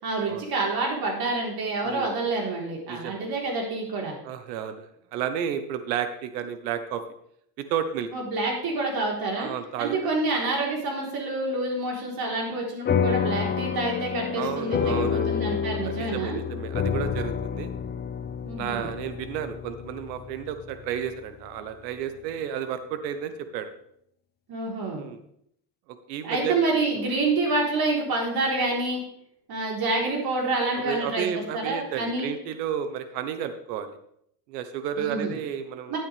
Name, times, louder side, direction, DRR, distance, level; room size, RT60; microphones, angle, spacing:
voice 1, 0.0-4.1 8.1-9.5 9.8-16.4 18.4-18.9 24.5-25.1 26.2-29.0 29.5-31.3 31.5-32.3 35.0-35.4 35.9-36.0, right 2 dB, 50° right, -1 dB, 4.0 m, -27 dB
voice 2, 2.9-3.3 4.2-7.0 7.7-8.1 9.4-9.9 14.4-15.3 16.0-17.7 18.6-23.7 24.9-25.2 25.9-26.6 26.9-27.0 30.7-34.0 34.5-36.0, right 8 dB, 85° right, 10 dB, 1.3 m, -32 dB
sound 1, 12.9-21.6, left 7 dB, 20° left, 0.5 m, -29 dB
11.5 x 9.4 x 3.5 m, 0.71 s
supercardioid pair, 100°, 48 cm